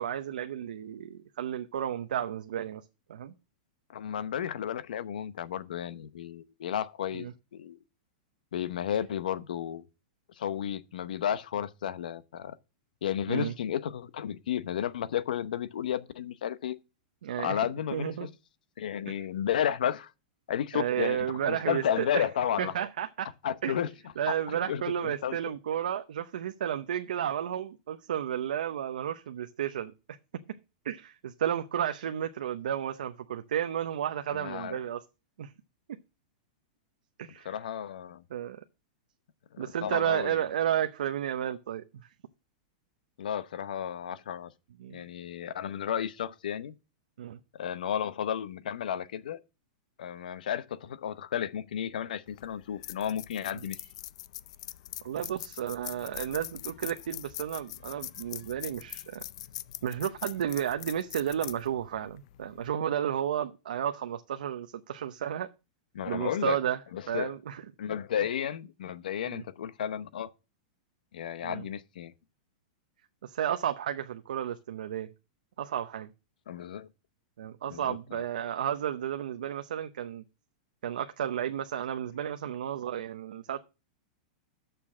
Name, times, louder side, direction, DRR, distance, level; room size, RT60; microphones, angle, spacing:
voice 1, 0.0-2.8 3.1-3.3 7.1-7.3 13.3-13.5 17.2-17.6 17.9-18.3 20.7-22.3 22.6-23.3 23.6-23.8 24.2-29.9 30.8-35.0 35.4-35.5 35.9-36.0 37.2-37.5 38.3-38.6 39.6-41.8 44.8-45.0 47.2-47.4 55.0-59.2 59.8-65.5 66.1-66.8 67.1-67.6 69.3-69.4 71.4-71.6 73.2-75.1 75.6-76.1 77.4-80.2 80.8-83.6, right 10 dB, 85° right, 0.7 m, -32 dB
voice 2, 3.9-7.3 7.5-7.8 8.5-9.8 10.4-12.6 13.0-16.8 17.4-18.3 18.8-20.1 20.5-22.7 23.4-23.9 24.5-25.4 34.3-34.8 37.4-38.2 39.5-40.4 43.2-44.5 44.9-46.7 47.5-49.4 50.0-53.8 65.9-66.6 66.9-67.3 67.8-70.3 71.1-72.1 76.5-76.9 77.7-78.0, left 9 dB, 85° left, 0.8 m, -33 dB
sound 1, 52.3-62.7, left 15 dB, 50° left, 0.4 m, -43 dB
6.8 x 5.8 x 7.3 m
supercardioid pair, 165°, 4 cm